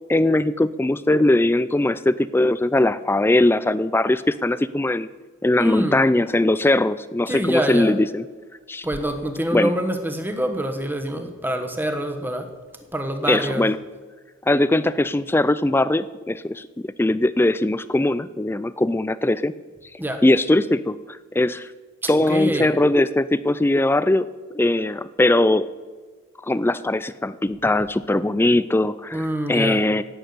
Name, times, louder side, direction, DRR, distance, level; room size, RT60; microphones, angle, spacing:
voice 1, 0.1-5.1 5.4-8.2 8.7-8.9 9.5-9.7 13.3-13.8 14.5-19.5 20.2-21.0 21.3-21.7 22.1-24.3 24.5-25.7 26.4-30.0, left 1 dB, 10° left, 16 dB, 0.3 m, -20 dB
voice 2, 5.6-6.0 7.3-8.0 8.8-12.5 12.9-13.7 20.0-20.2 22.0-22.7 29.1-29.9, equal, 10° right, 6 dB, 1.2 m, -26 dB
11.5 x 8.7 x 9.4 m, 1.4 s
head